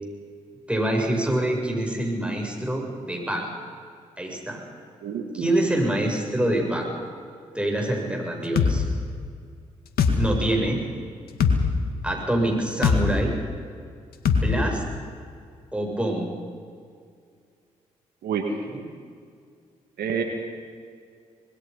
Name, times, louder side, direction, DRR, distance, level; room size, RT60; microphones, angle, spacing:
voice 1, 0.7-3.5 4.2-4.6 5.3-6.9 7.5-8.8 10.2-10.8 12.0-13.3 14.3-14.8 15.7-16.3 18.7-18.8, right 1 dB, 5° right, 0 dB, 7.9 m, -25 dB
voice 2, 5.0-5.5 18.2-18.5 20.0-20.2, right 7 dB, 70° right, 3 dB, 2.1 m, -28 dB
sound 1, 8.6-8.7 10.0-10.2 11.4-11.6 12.8-13.0 14.2-14.4, left 6 dB, 70° left, 2.1 m, -19 dB
26.0 x 20.5 x 5.7 m, 2.2 s
hypercardioid pair, 40°, 17 cm